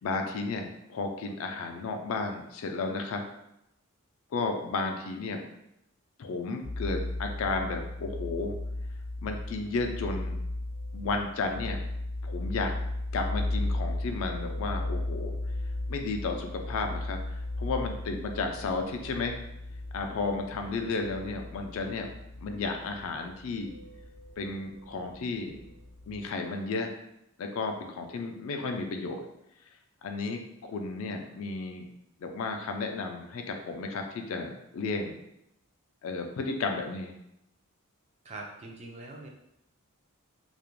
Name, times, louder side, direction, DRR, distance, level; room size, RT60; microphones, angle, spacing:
voice 1, 0.0-3.2 4.3-5.4 6.2-8.6 9.2-10.4 10.9-11.8 12.2-12.7 13.1-15.4 15.9-19.4 19.9-22.1 22.4-23.7 24.4-25.6 26.1-26.9 27.4-29.2 30.0-31.9 32.2-35.2 36.0-37.1, left 3 dB, 65° left, 4 dB, 0.3 m, -33 dB
sound 1, 6.6-26.2, left 2 dB, 75° right, 0.8 m, -36 dB
voice 2, 38.2-39.3, right 2 dB, 30° right, 1 dB, 0.3 m, -43 dB
2.4 x 2.1 x 2.9 m, 0.82 s
head